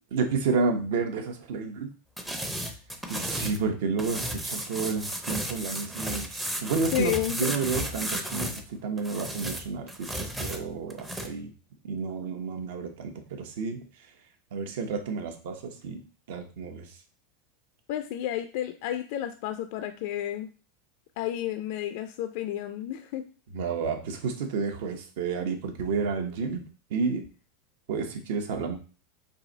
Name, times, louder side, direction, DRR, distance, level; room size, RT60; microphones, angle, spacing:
voice 1, 0.1-1.9 3.1-11.5 11.8-13.8 14.5-16.0 16.3-16.9 23.5-26.6 26.9-27.2 27.9-28.8, right 5 dB, 70° right, 5 dB, 0.9 m, -30 dB
sound 1, 2.2-3.6 4.0-8.6 9.0-11.3, right 1 dB, 5° right, 0.5 m, -34 dB
voice 2, 6.9-7.6 17.9-20.5 21.2-23.3, left 12 dB, 55° left, 8 dB, 0.3 m, -31 dB
4.7 x 2.6 x 3.9 m, 0.37 s
supercardioid pair, 160°, 0 cm